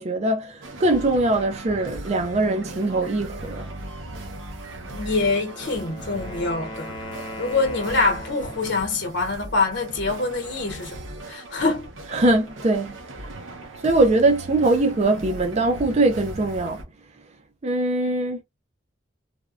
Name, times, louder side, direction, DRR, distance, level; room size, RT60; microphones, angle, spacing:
voice 1, 0.0-3.7 12.1-13.3 13.8-16.8 17.6-18.4, right 2 dB, 35° right, 0.5 m, -22 dB
sound 1, 0.6-16.8, right 2 dB, 80° right, 0.8 m, -38 dB
voice 2, 4.9-6.9 7.4-11.9, left 3 dB, 65° left, 1.0 m, -25 dB
Wind instrument woodwind instrument, 5.1-8.9, left 1 dB, 25° left, 0.7 m, -38 dB
3.4 x 2.2 x 2.4 m
head